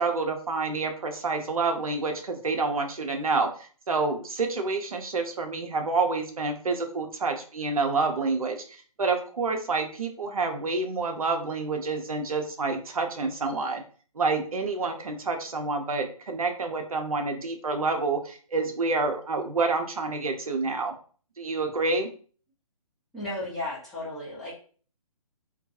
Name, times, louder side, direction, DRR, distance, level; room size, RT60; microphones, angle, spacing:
voice 1, 0.0-13.8 14.1-20.9 21.4-22.1, right 3 dB, 70° right, 5 dB, 0.5 m, -28 dB
voice 2, 23.1-24.5, left 1 dB, ahead, -10 dB, 0.7 m, -34 dB
2.3 x 2.2 x 2.7 m, 0.42 s
figure-of-eight pair, 135°, 19 cm